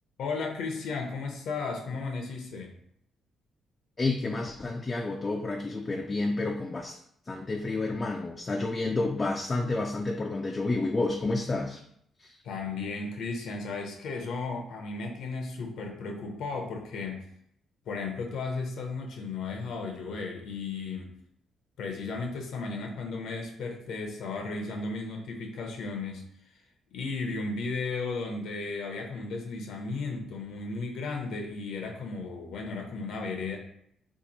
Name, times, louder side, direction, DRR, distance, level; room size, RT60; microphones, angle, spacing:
voice 1, 0.2-2.7 12.4-17.3 17.9-21.1 21.8-26.3 26.9-33.6, left 4 dB, 75° left, 2 dB, 0.6 m, -35 dB
voice 2, 4.0-7.0 7.3-11.8 12.2-12.4, left 2 dB, 30° left, 2 dB, 0.3 m, -30 dB
2.7 x 2.5 x 3.9 m, 0.71 s
cardioid pair, 90°, 0 cm